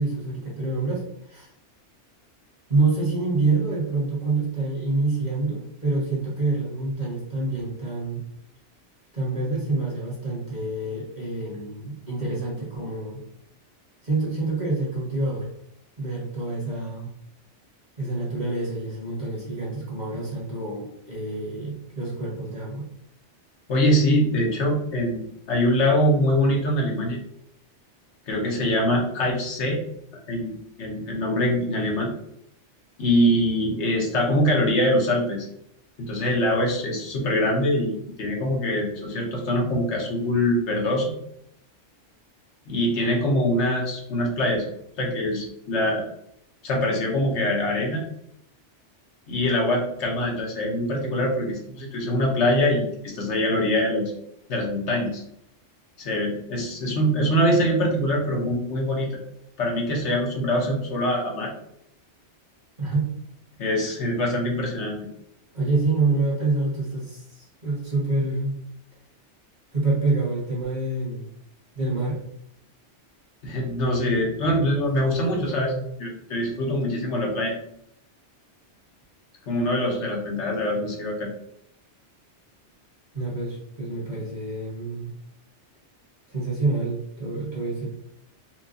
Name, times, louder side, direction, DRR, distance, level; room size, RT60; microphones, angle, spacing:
voice 1, 0.0-1.5 2.7-8.2 9.1-13.2 14.0-15.5 16.0-17.1 18.0-22.9 62.8-63.1 65.5-68.6 69.7-71.3 71.7-72.2 75.0-75.8 83.1-85.1 86.3-87.9, right 3 dB, 40° right, -5 dB, 1.4 m, -27 dB
voice 2, 23.7-27.2 28.3-29.8 30.3-32.1 33.0-35.5 36.0-41.2 42.7-44.6 45.0-46.0 46.6-48.0 49.3-54.1 54.5-55.2 56.0-59.2 59.6-61.5 63.6-65.1 73.4-75.7 76.0-77.5 79.5-81.3, equal, 70° left, -1 dB, 1.1 m, -23 dB
4.4 x 2.3 x 2.6 m, 0.74 s
omnidirectional pair, 1.2 m